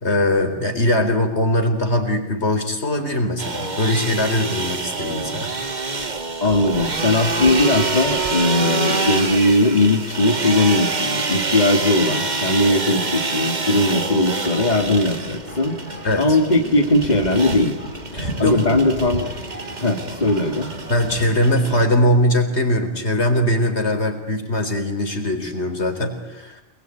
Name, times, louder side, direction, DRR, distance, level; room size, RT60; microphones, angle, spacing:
voice 1, 0.0-5.5 16.0-16.4 18.1-18.6 20.9-26.6, left 1 dB, 70° left, 5 dB, 4.4 m, -21 dB
sound 1, 3.4-21.8, right 3 dB, 40° right, 1.7 m, -27 dB
voice 2, 6.4-15.8 16.2-17.8 18.4-19.3 19.8-20.7, left 2 dB, 40° left, 2 dB, 2.5 m, -19 dB
sound 2, 14.7-21.3, equal, 75° right, 5.9 m, -35 dB
28.0 x 21.0 x 9.3 m, 0.95 s
omnidirectional pair, 1.2 m